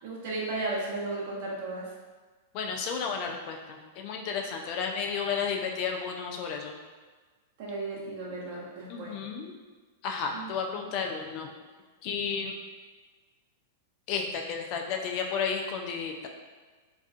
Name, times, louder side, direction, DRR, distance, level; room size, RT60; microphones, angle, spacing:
voice 1, 0.0-1.9 7.6-9.2 10.3-10.9, right 2 dB, 55° right, -5 dB, 0.7 m, -35 dB
voice 2, 2.5-6.7 8.9-9.5 10.0-11.5 12.0-12.6 14.1-16.3, left 6 dB, 50° left, 3 dB, 0.4 m, -32 dB
2.4 x 2.3 x 2.3 m, 1.4 s
hypercardioid pair, 110°, 0 cm